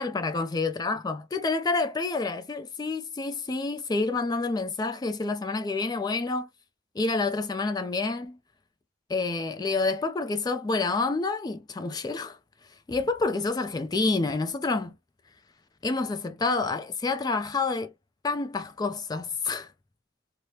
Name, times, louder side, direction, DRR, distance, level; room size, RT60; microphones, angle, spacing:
voice 1, 0.0-6.5 7.0-8.4 9.1-12.4 12.9-14.9 15.8-17.9 18.2-19.7, left 3 dB, 20° left, 0.3 m, -28 dB
3.2 x 2.0 x 2.7 m
head